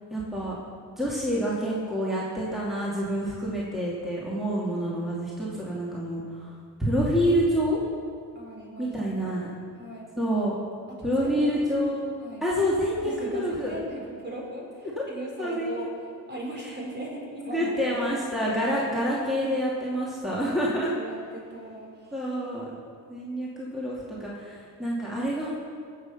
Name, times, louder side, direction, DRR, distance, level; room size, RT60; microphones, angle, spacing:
voice 1, 0.1-0.6 1.0-7.8 8.8-9.5 10.2-10.6 11.0-12.1 12.4-13.8 15.0-15.1 15.4-15.8 16.6-16.7 17.5-20.9 22.1-22.7 23.1-25.5, equal, ahead, -6 dB, 2.7 m, -27 dB
voice 2, 8.3-8.9 9.2-9.4 9.7-10.1 10.9-11.6 12.2-12.5 13.0-15.9 16.3-18.2 20.4-22.1, right 1 dB, 30° right, -2 dB, 4.4 m, -38 dB
19.0 x 8.0 x 5.7 m, 2.1 s
cardioid pair, 100°, 33 cm